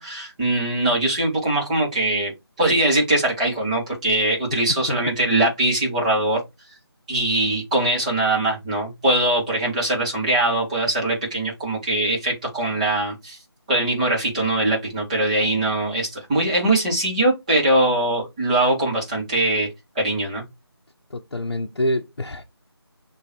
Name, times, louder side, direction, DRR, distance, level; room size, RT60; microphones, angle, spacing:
voice 1, 0.0-2.3 2.6-6.4 7.1-13.4 13.7-19.7 20.0-20.4, right 1 dB, 15° right, 2.0 m, -22 dB
voice 2, 21.1-22.4, equal, 60° left, 0.8 m, -26 dB
7.0 x 3.2 x 4.5 m
figure-of-eight pair, 165°, 14 cm